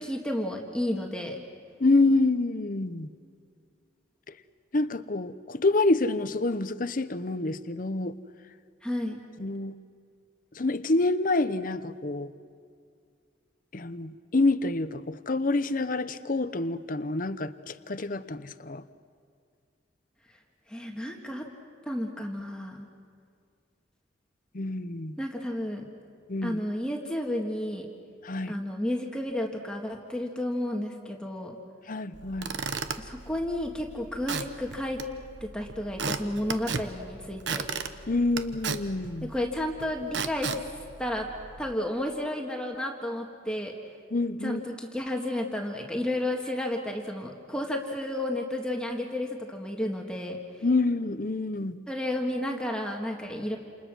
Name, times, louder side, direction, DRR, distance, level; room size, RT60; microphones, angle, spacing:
voice 1, 0.0-1.4 8.8-9.2 20.7-21.5 21.8-22.9 25.2-25.8 26.4-27.9 28.5-31.6 33.0-35.0 35.4-37.6 39.3-40.5 41.0-41.3 41.6-43.7 44.4-50.4 51.9-53.6, left 1 dB, 5° left, 1 dB, 1.7 m, -32 dB
voice 2, 1.8-3.1 4.3-4.4 4.7-8.2 9.4-9.7 10.5-12.3 13.7-18.8 24.5-25.2 26.3-26.6 28.2-28.6 31.9-32.5 38.1-39.3 44.1-44.6 50.6-51.8, left 2 dB, 45° left, 13 dB, 0.8 m, -27 dB
Squeak / Wood, 32.1-41.7, right 5 dB, 70° right, 1.1 m, -36 dB
29.0 x 28.5 x 6.2 m, 2.2 s
head